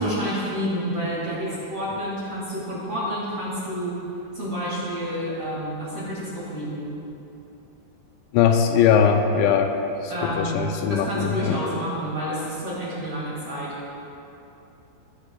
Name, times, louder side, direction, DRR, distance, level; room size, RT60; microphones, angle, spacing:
voice 1, 0.0-3.9 4.3-6.9 10.1-10.6 10.9-13.7, equal, 45° right, -8 dB, 2.2 m, -29 dB
voice 2, 8.3-9.7 10.0-11.6, left 7 dB, 85° left, 5 dB, 2.8 m, -20 dB
18.5 x 10.0 x 2.3 m, 2.9 s
omnidirectional pair, 5.4 m